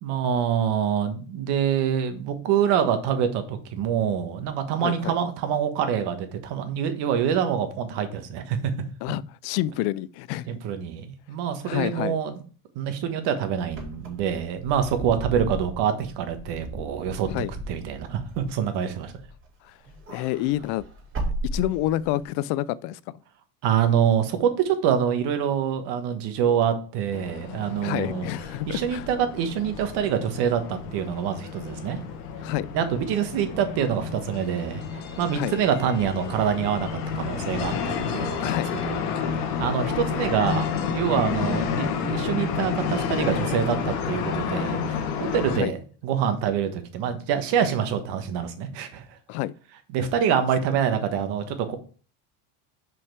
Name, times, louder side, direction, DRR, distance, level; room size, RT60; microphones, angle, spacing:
voice 1, 0.0-8.7 10.5-12.3 12.7-17.3 17.7-19.1 23.6-28.3 28.7-32.0 32.7-39.0 39.6-45.0 45.3-45.8 46.0-49.0 49.9-51.8, right 8 dB, 60° right, 1.4 m, -26 dB
voice 2, 4.8-5.2 9.0-10.5 11.6-12.2 17.3-17.5 19.6-19.8 20.1-20.8 21.5-23.0 27.8-29.1 32.4-32.7 35.3-35.6 38.4-38.8 45.5-45.7 49.3-49.5, left 15 dB, 60° left, 0.5 m, -28 dB
Wind / Car, 13.7-19.5 19.8-22.2, right 1 dB, 25° right, 2.5 m, -35 dB
sound 1, 27.1-45.6, left 6 dB, 80° left, 1.4 m, -30 dB
5.7 x 5.3 x 4.7 m
cardioid pair, 135°, 45 cm